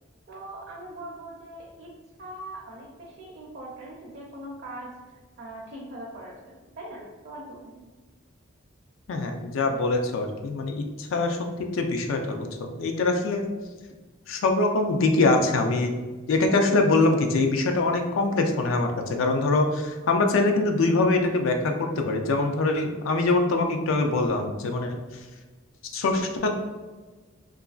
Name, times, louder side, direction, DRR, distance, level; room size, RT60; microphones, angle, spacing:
voice 1, 0.3-5.0 5.4-7.9, right 1 dB, 50° right, -3 dB, 0.5 m, -41 dB
voice 2, 9.1-13.5 14.3-15.9 16.3-25.0 25.9-26.5, left 2 dB, 70° left, 5 dB, 0.4 m, -24 dB
2.9 x 2.4 x 2.3 m, 1.3 s
head